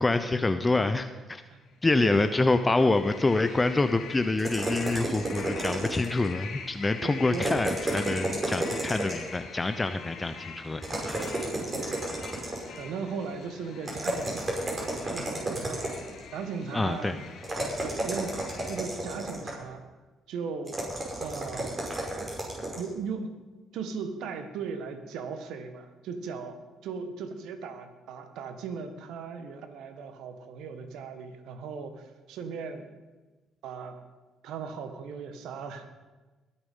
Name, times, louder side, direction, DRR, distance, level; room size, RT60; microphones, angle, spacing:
voice 1, 0.0-1.4 1.8-11.5 16.7-17.2, left 2 dB, 20° left, 9 dB, 0.8 m, -26 dB
sound 1, 1.7-18.8, left 5 dB, 70° left, 2.2 m, -44 dB
voice 2, 2.0-2.4 5.2-5.4 7.0-7.5 11.7-12.0 12.4-16.0 16.3-17.2 17.8-18.4 18.7-19.8 20.3-20.8 21.2-21.9 22.7-23.3 23.7-32.9 33.6-34.0 34.4-35.9, right 5 dB, 75° right, 8 dB, 1.5 m, -38 dB
sound 2, 4.4-6.3 7.3-9.4 10.8-12.8 13.8-16.2 17.4-19.7 20.7-22.9, right 1 dB, 30° right, 5.1 m, -32 dB
21.0 x 7.2 x 5.5 m, 1.2 s
supercardioid pair, 60°, 0 cm